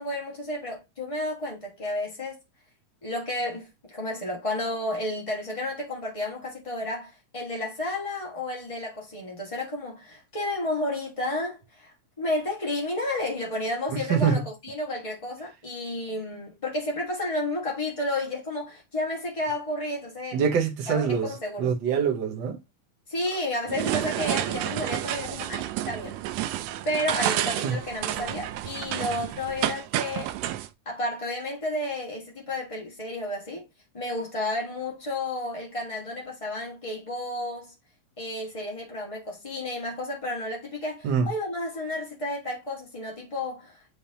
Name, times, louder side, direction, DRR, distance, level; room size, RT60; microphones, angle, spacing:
voice 1, 0.0-2.4 3.0-20.4 20.9-21.7 23.1-26.2 26.8-30.3 30.8-33.7 33.9-37.7 38.2-43.8, left 1 dB, 35° left, 0.5 m, -32 dB
voice 2, 13.9-14.4 20.3-22.6 27.6-27.8 41.0-41.3, right 6 dB, 70° right, 1.1 m, -25 dB
sound 1, 23.7-30.7, right 13 dB, 90° right, 1.5 m, -30 dB
10.0 x 3.4 x 2.9 m
omnidirectional pair, 3.6 m